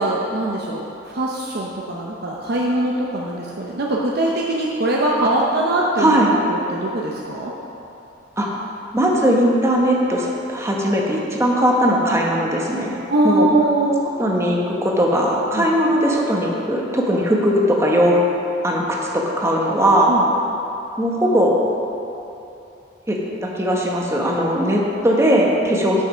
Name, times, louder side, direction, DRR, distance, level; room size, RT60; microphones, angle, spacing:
voice 1, 0.0-6.2 6.5-7.5 13.1-14.0 15.5-15.7 20.1-20.3 25.7-25.8, right 1 dB, 60° right, -3 dB, 0.8 m, -22 dB
voice 2, 6.0-6.3 8.4-8.5 8.9-13.5 14.2-18.2 18.6-20.1 21.0-21.6 23.1-23.2 23.5-26.0, equal, 15° right, -2 dB, 1.1 m, -19 dB
7.4 x 5.8 x 6.1 m, 2.9 s
head